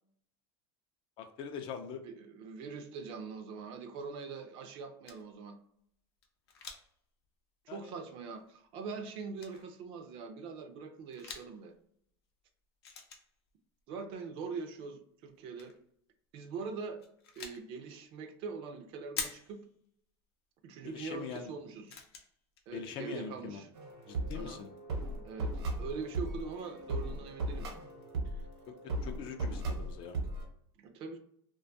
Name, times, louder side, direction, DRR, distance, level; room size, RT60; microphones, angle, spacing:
voice 1, 1.2-2.0 7.7-7.9 20.8-21.5 22.7-23.6 24.1-24.7 29.0-30.2, left 7 dB, 40° left, 6 dB, 0.4 m, -42 dB
voice 2, 2.0-5.6 7.7-11.8 13.9-15.7 16.3-17.0 17.4-19.6 20.6-22.0 22.7-23.7 24.3-24.6 25.2-27.7 28.3-28.4 30.8-31.2, right 5 dB, 45° right, 6 dB, 0.4 m, -43 dB
sound 1, 5.0-5.3 6.2-6.9 7.2-7.3 8.4-8.5 9.4-9.6 11.0-11.6 12.8-13.5 15.3-15.8 16.8-17.7 19.2-19.7 20.9-21.0 21.4-21.5 21.9-22.9 23.9-24.0 24.2-24.5, left 6 dB, 90° left, 0.6 m, -44 dB
sound 2, 23.7-30.4, right 2 dB, 85° right, 0.9 m, -37 dB
2.4 x 2.2 x 2.6 m, 0.69 s
supercardioid pair, 140°, 13 cm